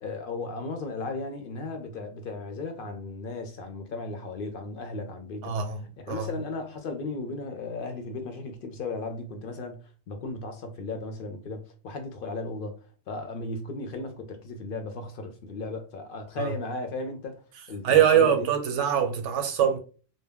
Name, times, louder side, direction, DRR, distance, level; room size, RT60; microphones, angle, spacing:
voice 1, 0.0-5.5 6.0-9.8 10.1-12.8 13.1-17.4 17.7-18.5, left 3 dB, 60° left, 0.6 m, -35 dB
voice 2, 5.4-5.8 6.1-6.3 16.4-16.5 17.8-19.8, right 9 dB, 75° right, 0.9 m, -23 dB
2.2 x 2.1 x 3.4 m
omnidirectional pair, 1.3 m